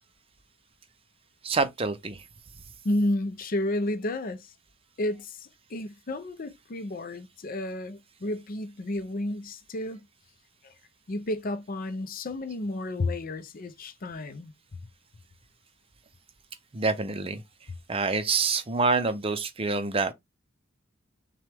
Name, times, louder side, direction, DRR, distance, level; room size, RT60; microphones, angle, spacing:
voice 1, 1.4-2.2 16.7-17.4 17.9-20.1, right 4 dB, 30° right, 0.6 m, -26 dB
voice 2, 2.8-4.5 5.0-10.1 10.6-10.7 11.1-14.5, left 1 dB, 45° left, 0.5 m, -31 dB
6.0 x 2.2 x 3.4 m
head